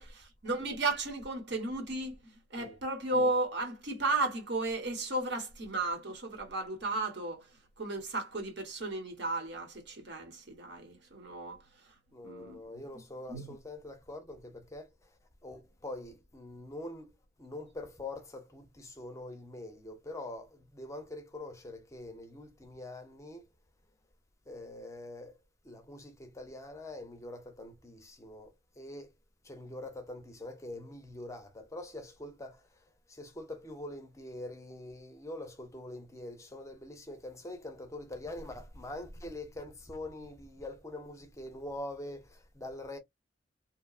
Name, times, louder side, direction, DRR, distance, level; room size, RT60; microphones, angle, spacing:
voice 1, 0.0-7.4 7.8-11.6 12.2-12.6 13.3-13.5, right 2 dB, 65° right, 1.2 m, -34 dB
voice 2, 12.1-14.9 15.4-17.1 17.4-23.5 24.5-25.3 25.6-29.1 29.4-32.7 33.1-43.0, left 1 dB, 15° left, 0.5 m, -44 dB
2.9 x 2.2 x 2.3 m
head